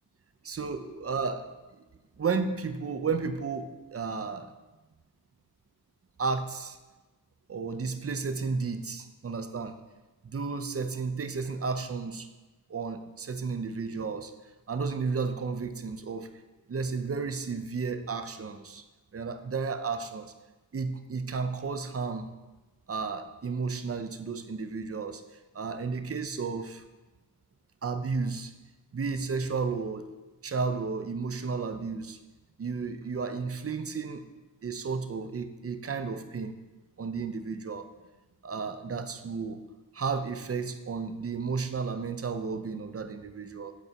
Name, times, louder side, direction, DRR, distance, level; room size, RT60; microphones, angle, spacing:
voice 1, 0.4-1.8 2.2-4.5 6.2-6.8 7.5-9.8 10.2-12.3 12.7-14.3 14.7-16.3 16.7-18.8 19.1-20.3 20.7-22.3 22.9-25.2 25.5-26.8 27.8-28.5 28.9-30.1 30.4-32.2 32.6-34.2 34.6-36.6 37.0-37.8 38.4-39.6 39.9-43.7, right 4 dB, 35° right, 9 dB, 0.6 m, -33 dB
8.2 x 4.0 x 4.6 m, 1.1 s
wide cardioid pair, 60°, 40 cm